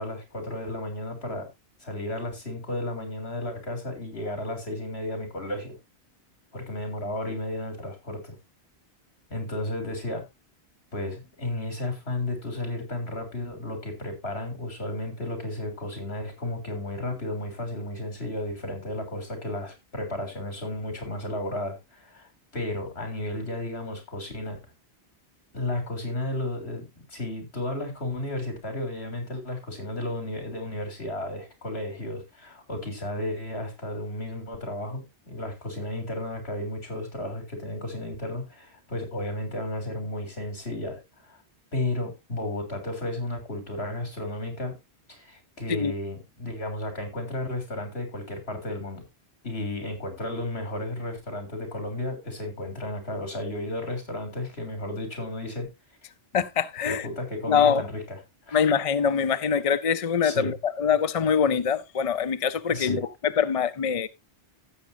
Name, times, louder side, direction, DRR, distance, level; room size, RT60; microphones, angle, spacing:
voice 1, 0.0-1.5 1.8-5.8 6.5-8.3 9.3-10.2 10.9-24.6 25.5-41.4 41.7-44.7 45.1-49.0 49.4-55.7 56.8-58.2 58.5-58.6 60.2-60.5 62.7-63.0, left 1 dB, 70° left, 3.8 m, -33 dB
voice 2, 56.3-57.0 57.5-57.8 58.5-64.1, left 7 dB, 45° left, 0.5 m, -24 dB
16.0 x 7.3 x 2.7 m
omnidirectional pair, 1.1 m